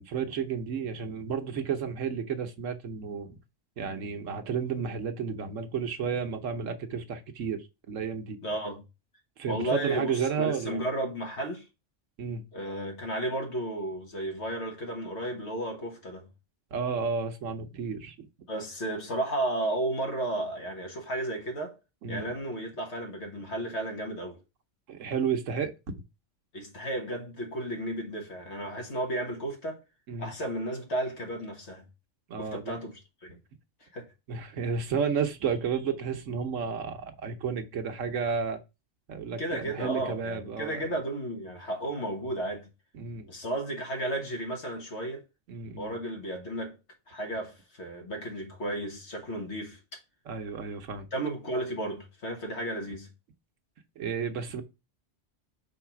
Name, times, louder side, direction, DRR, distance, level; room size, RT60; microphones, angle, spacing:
voice 1, 0.0-3.4 3.8-7.6 7.9-8.4 9.4-10.8 12.2-12.4 16.7-18.3 22.0-22.3 24.9-25.7 30.1-30.3 32.3-32.8 34.3-38.6 39.1-40.9 42.9-43.3 45.5-45.9 50.3-51.1 54.0-54.6, right 6 dB, 90° right, 1.2 m, -32 dB
voice 2, 8.4-8.8 9.5-11.7 12.5-16.3 18.5-21.8 22.1-24.4 26.5-29.8 30.2-31.9 32.4-32.9 33.2-33.4 33.9-34.1 39.4-42.7 43.3-45.2 45.8-46.8 47.1-50.0 51.1-53.1, right 1 dB, 65° left, 1.7 m, -33 dB
4.7 x 4.1 x 5.8 m
omnidirectional pair, 1.3 m